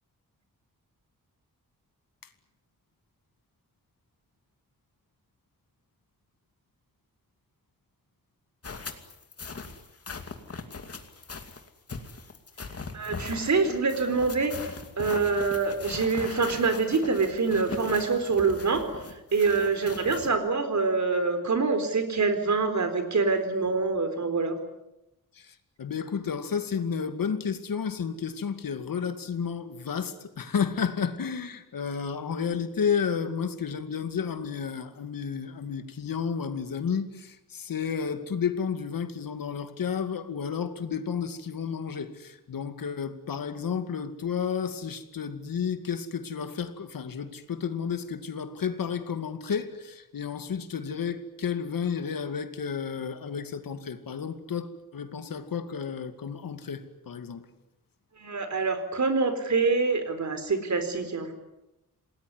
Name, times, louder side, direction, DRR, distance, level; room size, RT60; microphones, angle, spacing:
sound 1, 8.6-20.3, left 4 dB, 45° left, 2.5 m, -40 dB
voice 1, 12.9-14.5 15.0-18.9 19.3-24.6 58.2-61.4, right 4 dB, 55° right, 4.2 m, -25 dB
voice 2, 25.3-57.5, left 6 dB, 80° left, 2.4 m, -32 dB
28.0 x 19.5 x 9.7 m
wide cardioid pair, 140°, 33 cm